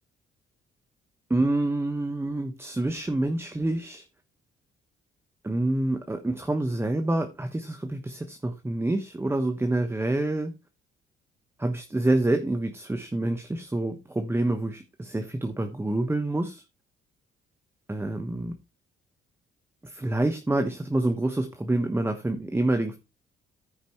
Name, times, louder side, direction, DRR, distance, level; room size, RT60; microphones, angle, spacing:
voice 1, 1.3-4.0 5.4-10.5 11.6-16.6 17.9-18.5 19.8-23.0, right 2 dB, 10° right, 6 dB, 1.1 m, -27 dB
14.5 x 5.2 x 3.2 m, 0.27 s
cardioid pair, 90°, 20 cm